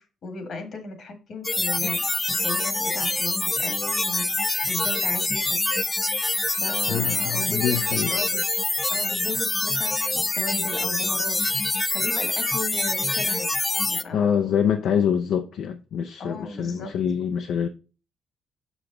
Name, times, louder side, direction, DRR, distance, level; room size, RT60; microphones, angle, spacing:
voice 1, 0.0-5.6 6.4-7.6 7.9-8.4 8.9-13.5 13.8-14.3 16.2-16.9, left 3 dB, 60° left, 1.5 m, -36 dB
sound 1, 1.4-14.0, left 2 dB, 15° left, 0.4 m, -25 dB
voice 2, 6.9-8.1 14.1-17.7, left 8 dB, 75° left, 0.5 m, -25 dB
6.0 x 5.0 x 3.7 m
cardioid pair, 90°, 0 cm